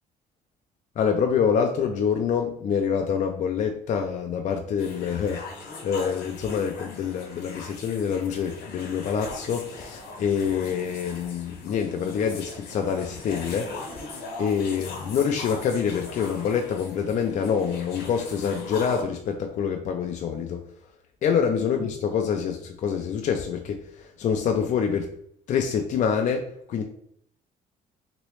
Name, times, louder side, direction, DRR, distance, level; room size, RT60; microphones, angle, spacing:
voice 1, 1.0-5.4 5.8-13.7 14.4-20.6 21.2-25.1 25.5-26.8, left 7 dB, 45° left, 3 dB, 0.4 m, -26 dB
sound 1, 4.8-19.0, left 3 dB, 75° left, 0.9 m, -40 dB
3.0 x 2.9 x 3.0 m, 0.67 s
cardioid pair, 110°, 17 cm